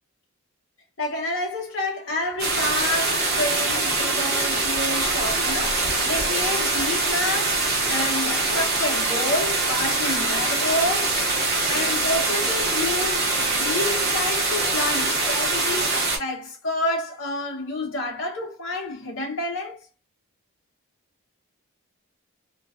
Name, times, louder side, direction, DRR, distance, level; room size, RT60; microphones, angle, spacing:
voice 1, 1.0-11.2 11.7-19.8, left 1 dB, 55° left, 0.8 m, -29 dB
sound 1, 2.4-16.2, right 3 dB, 45° right, 0.9 m, -23 dB
2.3 x 2.2 x 2.4 m
head